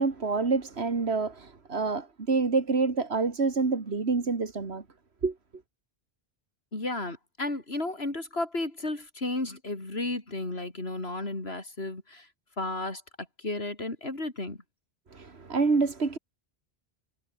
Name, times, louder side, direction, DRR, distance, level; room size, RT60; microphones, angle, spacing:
voice 1, 0.0-4.8 5.2-5.3 15.1-16.2, right 4 dB, 85° right, 2.4 m, -27 dB
voice 2, 6.7-12.3 12.6-14.6, left 2 dB, 75° left, 4.6 m, -33 dB
omnidirectional pair, 1.1 m